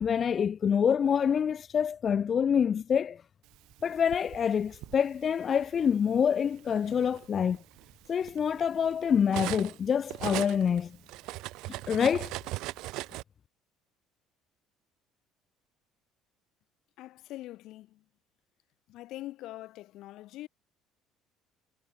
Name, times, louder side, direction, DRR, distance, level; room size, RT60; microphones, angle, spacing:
voice 1, 0.0-3.2 3.8-7.6 8.1-11.0 11.7-12.3, left 7 dB, 30° left, 0.3 m, -26 dB
Cutlery silverware, 3.7-5.0 5.9-6.1 6.5-9.8 10.1-13.2, right 19 dB, 65° right, 1.1 m, -39 dB
voice 2, 17.0-18.1 18.9-20.5, left 16 dB, 55° left, 1.5 m, -43 dB
cardioid pair, 175°, 0 cm